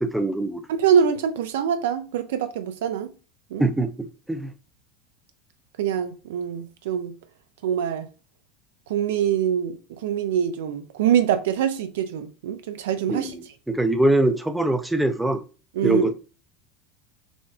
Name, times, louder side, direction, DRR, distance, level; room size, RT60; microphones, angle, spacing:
voice 1, 0.0-0.6 3.6-4.5 13.1-13.3 13.7-15.4 15.8-16.2, right 1 dB, 5° right, 0.5 m, -23 dB
voice 2, 0.7-3.1 3.5-3.6 5.8-7.1 7.6-8.1 8.9-13.3 15.7-16.1, right 8 dB, 65° right, 0.4 m, -24 dB
6.2 x 2.3 x 2.2 m
figure-of-eight pair, 75°, 0 cm